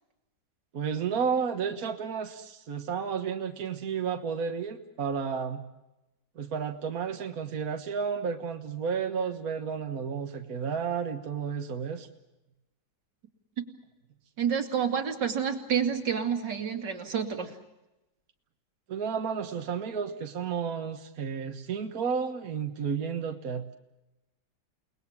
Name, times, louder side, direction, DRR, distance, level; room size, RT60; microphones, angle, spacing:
voice 1, 0.7-5.6 6.4-12.1 18.9-23.8, right 6 dB, 55° right, 5 dB, 1.8 m, -32 dB
voice 2, 14.4-17.5, right 7 dB, 80° right, 5 dB, 3.1 m, -29 dB
29.5 x 20.0 x 7.3 m, 0.96 s
omnidirectional pair, 1.9 m